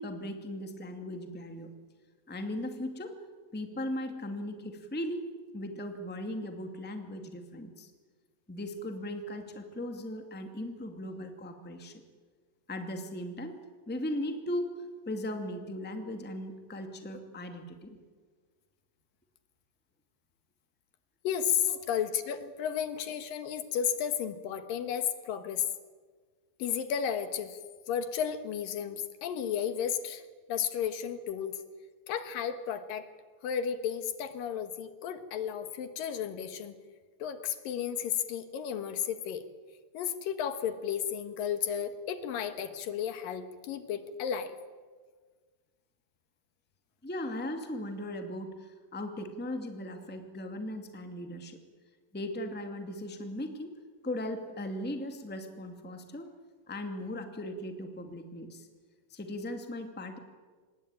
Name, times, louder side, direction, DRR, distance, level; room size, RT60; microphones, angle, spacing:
voice 1, 0.0-1.7 2.3-3.1 3.5-5.3 5.5-7.9 8.5-12.0 12.7-13.6 13.9-18.0 21.7-21.8 47.0-51.6 52.1-53.8 54.0-56.3 56.7-58.7 59.1-60.2, left 1 dB, 5° left, 5 dB, 1.5 m, -38 dB
voice 2, 21.2-25.7 26.6-27.6 27.9-30.2 30.5-31.6 32.1-33.1 33.4-36.7 37.2-39.5 39.9-44.6, left 8 dB, 75° left, 10 dB, 3.1 m, -33 dB
26.0 x 20.5 x 9.0 m, 1.5 s
omnidirectional pair, 4.0 m